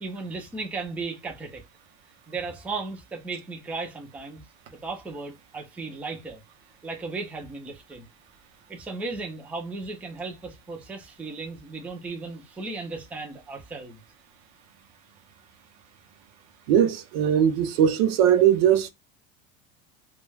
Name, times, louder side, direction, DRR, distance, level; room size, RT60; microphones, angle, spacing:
voice 1, 0.0-1.6 2.3-4.4 4.7-6.4 6.8-8.1 8.7-14.0, right 3 dB, 5° right, 0.3 m, -35 dB
voice 2, 16.7-18.9, right 9 dB, 80° right, 0.6 m, -20 dB
2.2 x 2.2 x 3.2 m
cardioid pair, 155°, 30 cm